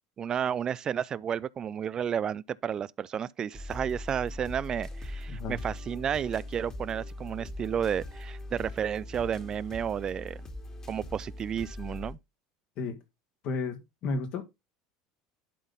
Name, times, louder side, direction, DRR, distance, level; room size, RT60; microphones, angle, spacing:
voice 1, 0.2-10.4 10.9-12.2, right 8 dB, 35° right, 0.4 m, -32 dB
sound 1, 3.5-12.1, left 1 dB, 30° left, 2.1 m, -40 dB
voice 2, 13.4-14.4, left 3 dB, 55° left, 2.2 m, -33 dB
11.5 x 4.0 x 3.8 m
hypercardioid pair, 80°, 2 cm